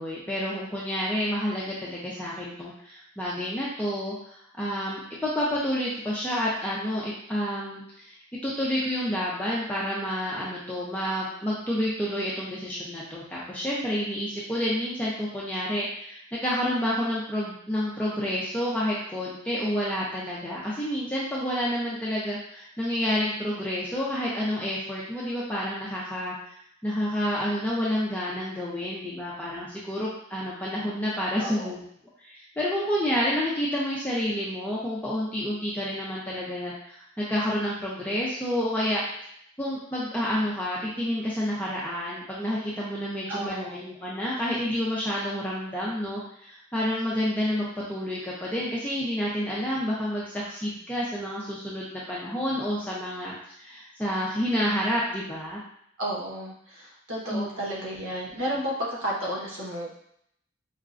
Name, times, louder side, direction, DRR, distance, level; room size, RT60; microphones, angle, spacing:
voice 1, 0.0-4.2 4.6-8.1 8.4-26.3 26.8-31.8 32.2-39.0 39.6-55.6 57.3-57.9, equal, 10° left, -7 dB, 0.5 m, -29 dB
voice 2, 31.4-31.7 43.3-43.7 56.0-59.9, equal, 85° right, -4 dB, 1.0 m, -32 dB
4.6 x 2.2 x 2.5 m, 0.69 s
head